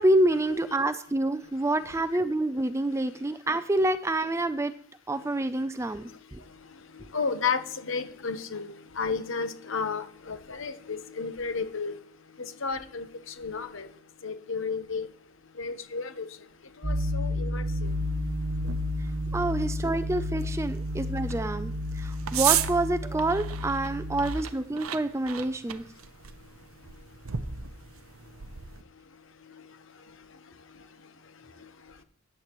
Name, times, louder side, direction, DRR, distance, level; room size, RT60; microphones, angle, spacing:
voice 1, 0.0-4.7 5.1-6.4 19.3-25.8, right 1 dB, 10° right, 11 dB, 0.4 m, -27 dB
voice 2, 7.1-7.6 7.9-11.9 12.6-13.1 13.4-13.9 14.2-15.1 15.6-16.3 16.8-17.6, left 5 dB, 60° left, 10 dB, 1.0 m, -32 dB
sound 1, 16.8-24.3, left 1 dB, 55° right, 1.1 m, -31 dB
sound 2, 17.8-28.8, right 11 dB, 70° right, 0.6 m, -36 dB
14.0 x 9.9 x 3.0 m, 0.67 s
head